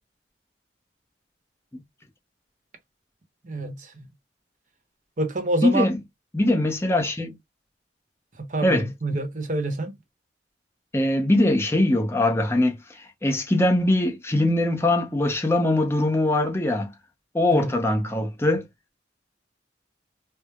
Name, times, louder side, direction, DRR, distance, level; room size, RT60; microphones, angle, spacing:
voice 1, 3.4-3.9 5.2-5.9 8.4-9.9 17.5-17.7, right 2 dB, 45° right, 0.8 m, -27 dB
voice 2, 5.6-6.0 6.3-7.4 8.6-8.9 10.9-16.9 17.3-18.6, left 1 dB, 15° left, 0.6 m, -22 dB
4.4 x 2.0 x 2.2 m
head